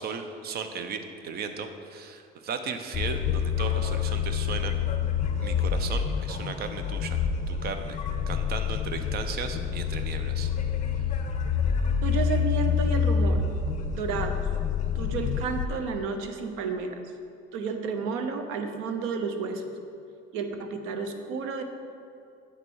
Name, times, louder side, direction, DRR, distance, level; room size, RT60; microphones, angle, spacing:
voice 1, 0.0-4.8 5.4-7.2 7.5-8.0 8.3-10.5, right 5 dB, 50° right, 8 dB, 0.7 m, -36 dB
sound 1, 2.9-15.7, left 7 dB, 35° left, 0.7 m, -27 dB
voice 2, 12.0-13.4 13.9-14.4 14.9-17.0 17.5-19.6 20.3-21.6, right 5 dB, 80° right, 6 dB, 0.9 m, -31 dB
8.2 x 6.2 x 4.6 m, 2.6 s
cardioid pair, 125°, 21 cm